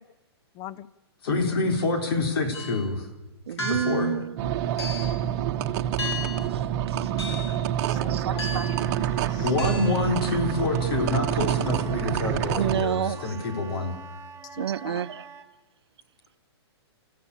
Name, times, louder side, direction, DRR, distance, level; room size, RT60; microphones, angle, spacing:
voice 1, 0.6-0.9 3.8-3.9 7.9-8.6 9.3-9.5 12.5-12.6 14.6-15.0, left 13 dB, 25° left, 0.7 m, -40 dB
voice 2, 1.2-3.1 3.5-4.1 9.4-13.9, left 3 dB, 60° left, 4.0 m, -27 dB
sound 1, 2.5-2.8 3.6-4.1 4.8-5.2 6.0-6.5 7.2-7.6 8.4-8.8 9.6-10.0, left 2 dB, 80° left, 5.8 m, -34 dB
voice 3, 3.5-4.5 6.5-7.1 7.5-8.8 9.3-9.4 12.6-13.4 14.6-15.3, right 9 dB, 70° right, 0.7 m, -31 dB
sound 2, 4.4-12.8, right 10 dB, 40° right, 1.2 m, -27 dB
Wind instrument woodwind instrument, 7.9-15.5, right 4 dB, 20° right, 1.5 m, -44 dB
29.5 x 14.5 x 8.6 m
hypercardioid pair, 140°, 14 cm